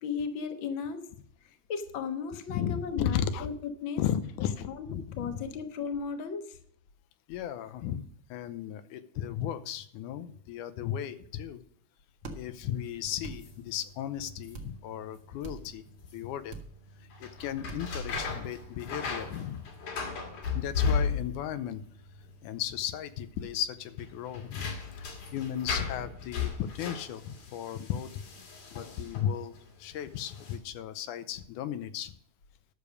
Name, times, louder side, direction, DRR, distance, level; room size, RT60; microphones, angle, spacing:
voice 1, 0.0-1.1 1.4-4.0 4.7-4.8 5.1-6.6, left 6 dB, 50° left, 7 dB, 1.6 m, -35 dB
voice 2, 2.5-3.5 4.0-5.4 7.3-8.0 8.3-11.6 12.3-15.8 16.1-16.6 17.2-19.7 20.5-21.8 22.4-24.7 25.3-28.1 28.7-29.5 29.8-32.1, left 10 dB, 90° left, 11 dB, 2.3 m, -35 dB
sound 1, 12.2-12.4 13.2-13.4 14.5-14.7 15.4-15.6 16.5-16.7 17.7-17.8 18.1-18.3, right 4 dB, 40° right, 1.0 m, -40 dB
sound 2, 12.6-29.6 30.2-30.6, left 5 dB, 75° left, 3.7 m, -36 dB
12.0 x 6.8 x 6.4 m, 0.64 s
omnidirectional pair, 3.6 m